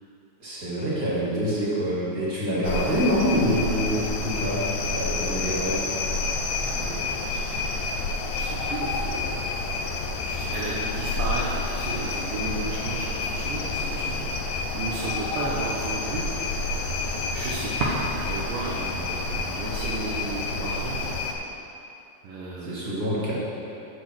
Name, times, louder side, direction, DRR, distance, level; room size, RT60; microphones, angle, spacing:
voice 1, 0.4-5.8 22.6-23.3, equal, 30° right, -8 dB, 1.8 m, -26 dB
sound 1, 2.6-21.3, left 3 dB, 75° left, 2.1 m, -29 dB
voice 2, 6.6-7.5 8.3-9.3 10.2-14.3 14.7-16.2 17.3-18.0 18.3-21.0 22.2-22.9, right 3 dB, 70° right, -6 dB, 2.4 m, -33 dB
8.2 x 6.9 x 6.1 m, 2.8 s
omnidirectional pair, 4.4 m